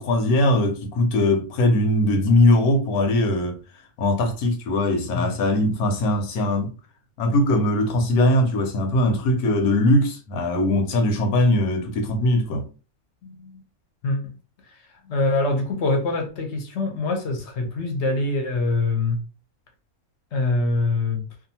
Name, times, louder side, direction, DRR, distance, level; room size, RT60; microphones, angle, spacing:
voice 1, 0.0-3.6 4.0-6.7 7.2-12.7, left 1 dB, 85° left, 1.2 m, -20 dB
voice 2, 13.2-13.6 14.0-14.2 15.1-19.2 20.3-21.2, left 2 dB, 60° left, 0.9 m, -24 dB
2.6 x 2.4 x 2.7 m
omnidirectional pair, 1.5 m